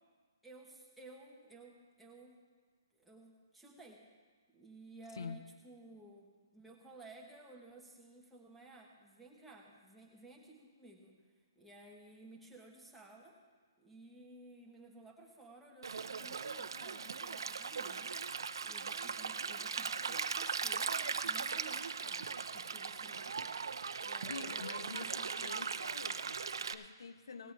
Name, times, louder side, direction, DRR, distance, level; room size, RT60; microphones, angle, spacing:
voice 1, 0.4-2.4 2.9-4.0 4.5-11.2 11.5-13.4 13.8-18.2 18.6-20.9 21.2-23.5 24.0-25.8 27.4-27.5, right 2 dB, ahead, -3 dB, 1.3 m, -56 dB
voice 2, 5.1-5.4 24.2-27.5, left 5 dB, 80° left, 12 dB, 0.7 m, -47 dB
Stream, 15.8-26.7, right 5 dB, 80° right, 0.6 m, -39 dB
18.0 x 8.1 x 4.7 m, 1.5 s
hypercardioid pair, 170°, 2 cm